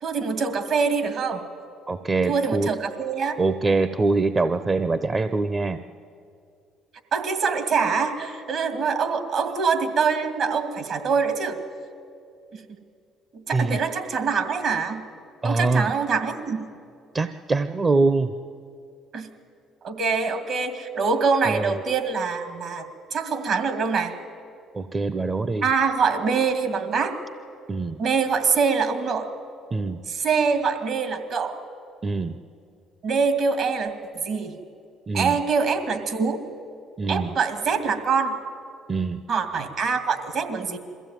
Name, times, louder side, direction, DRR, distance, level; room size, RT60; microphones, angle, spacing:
voice 1, 0.0-1.4 2.3-3.4 7.1-11.6 12.5-12.6 13.3-15.1 15.4-16.6 19.1-19.3 19.8-22.8 23.1-24.1 25.6-27.1 28.0-29.3 30.1-31.6 33.0-34.6 35.1-36.4 37.1-38.4 39.3-40.8, right 5 dB, 65° right, 8 dB, 2.3 m, -24 dB
voice 2, 1.9-2.7 3.4-5.8 13.5-13.8 15.4-15.9 17.1-18.4 21.5-21.7 24.7-25.7 27.7-28.0 29.7-30.0 32.0-32.3 35.1-35.3 37.0-37.3 38.9-39.2, right 3 dB, 35° right, 12 dB, 0.7 m, -23 dB
22.0 x 15.0 x 9.2 m, 2.4 s
supercardioid pair, 65°, 0 cm